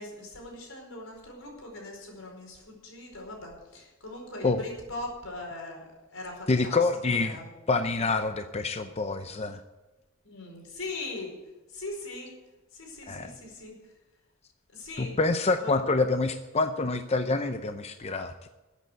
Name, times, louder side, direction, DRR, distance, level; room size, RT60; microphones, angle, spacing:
voice 1, 0.0-5.8 6.1-6.8 7.1-7.5 10.2-11.3 11.7-12.3 12.7-13.7 14.7-15.2 15.6-15.8, left 2 dB, 85° left, 0 dB, 4.9 m, -40 dB
voice 2, 6.5-7.4 7.7-9.6 13.1-13.4 15.0-18.5, left 3 dB, 30° left, 8 dB, 0.6 m, -27 dB
14.0 x 8.2 x 8.0 m, 1.1 s
head